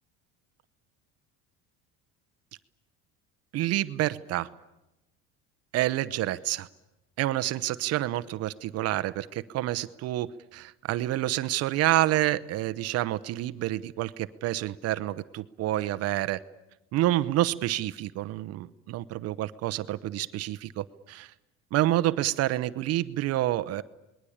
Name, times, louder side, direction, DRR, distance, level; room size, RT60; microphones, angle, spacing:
voice 1, 3.5-4.5 5.7-6.7 7.2-16.4 16.9-21.3 21.7-23.8, right 15 dB, 55° right, 14 dB, 0.8 m, -28 dB
27.0 x 21.0 x 8.7 m, 0.94 s
cardioid pair, 155°, 30 cm